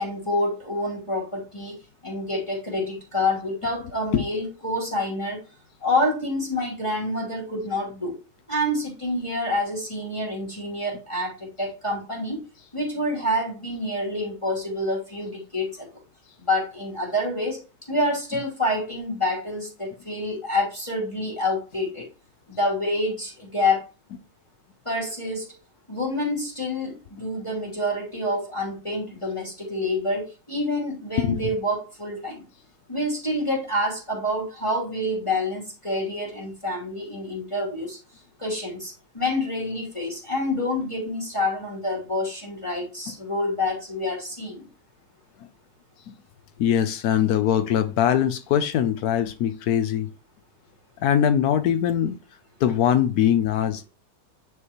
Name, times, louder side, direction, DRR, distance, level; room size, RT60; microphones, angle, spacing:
voice 1, 0.0-1.8 2.0-5.4 5.8-8.1 8.5-12.4 12.7-15.9 16.4-17.6 17.9-22.1 22.5-23.8 24.8-25.5 25.9-32.4 32.9-38.0 38.4-44.7, left 1 dB, 15° left, 2.8 m, -27 dB
voice 2, 46.6-50.1 51.0-52.2 52.6-53.8, left 9 dB, 85° left, 0.8 m, -22 dB
9.6 x 5.4 x 3.0 m
omnidirectional pair, 2.3 m